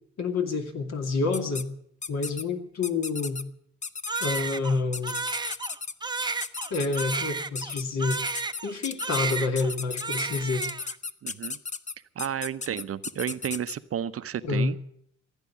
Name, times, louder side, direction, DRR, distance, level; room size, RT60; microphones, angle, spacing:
voice 1, 0.2-1.7 2.1-3.4 4.2-5.2 6.7-8.2 8.6-10.7 14.4-14.7, left 4 dB, 60° left, 5 dB, 2.5 m, -28 dB
sound 1, 1.3-1.6 2.0-2.4 2.8-3.4 3.8-4.4 4.9-5.9 6.4-7.2 7.5-7.8 8.1-13.7, left 4 dB, 25° left, 0.7 m, -35 dB
Crying sobbing, 4.1-8.8 9.0-9.7 10.0-11.0, right 4 dB, 15° right, 0.7 m, -32 dB
voice 2, 11.2-11.6 12.2-14.8, right 9 dB, 50° right, 13 dB, 0.7 m, -32 dB
15.5 x 9.8 x 8.4 m, 0.67 s
cardioid pair, 90°, 30 cm